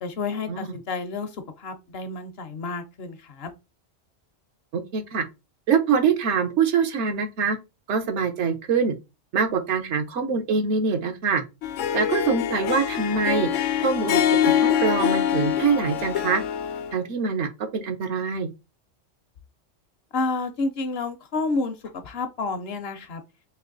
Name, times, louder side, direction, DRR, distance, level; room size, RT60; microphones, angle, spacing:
voice 1, 0.0-1.3 1.6-3.5 20.1-21.7 22.0-23.2, left 3 dB, 60° left, 0.8 m, -29 dB
voice 2, 4.7-5.2 5.7-7.6 7.9-8.9 9.3-11.4 11.9-13.5 13.8-16.4 16.9-18.5, right 5 dB, 70° right, 1.0 m, -24 dB
Harp, 11.6-16.9, left 9 dB, 85° left, 0.9 m, -24 dB
3.3 x 2.9 x 3.8 m
omnidirectional pair, 1.3 m